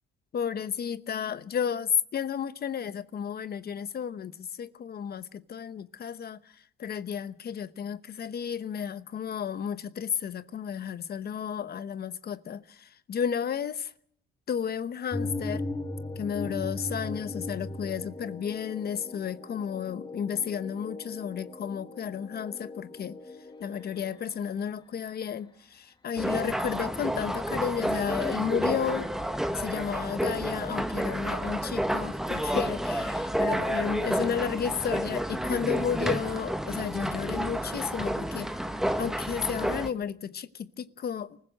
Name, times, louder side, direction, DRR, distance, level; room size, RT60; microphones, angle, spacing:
voice 1, 0.3-6.4 6.8-13.9 14.5-15.7 16.2-23.2 23.6-29.1 29.5-38.5 39.0-41.4, left 8 dB, 50° left, 0.9 m, -32 dB
sound 1, 15.1-24.5, left 2 dB, 20° left, 2.1 m, -38 dB
sound 2, 26.2-39.9, equal, ahead, 1.4 m, -30 dB
24.5 x 15.5 x 7.7 m
cardioid pair, 90°, 20 cm